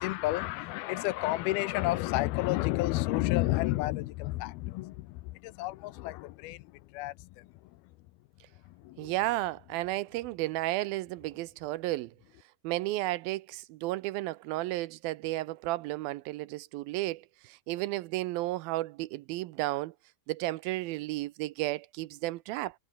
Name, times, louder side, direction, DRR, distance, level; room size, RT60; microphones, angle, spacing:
voice 1, 0.0-7.5 8.7-9.1, left 18 dB, 85° left, 2.6 m, -31 dB
voice 2, 9.0-12.1 12.6-19.9 20.3-22.8, right 18 dB, 80° right, 2.4 m, -33 dB
omnidirectional pair, 4.4 m